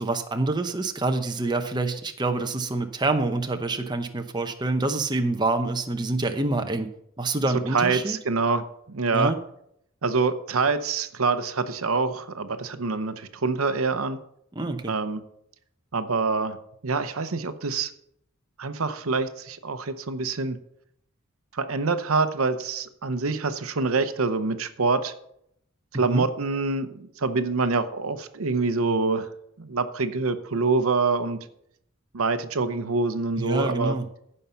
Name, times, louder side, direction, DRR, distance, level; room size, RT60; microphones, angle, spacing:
voice 1, 0.0-6.9 7.2-8.2 9.1-9.4 14.6-14.9 25.9-26.3 33.4-34.0, right 2 dB, 20° right, 6 dB, 0.8 m, -26 dB
voice 2, 7.7-9.3 10.0-14.2 14.9-15.2 15.9-16.6 16.8-17.9 18.6-20.6 21.5-25.1 25.9-29.3 29.6-31.4 32.1-34.0, right 4 dB, 80° right, 11 dB, 0.8 m, -25 dB
15.0 x 5.6 x 5.7 m, 0.73 s
head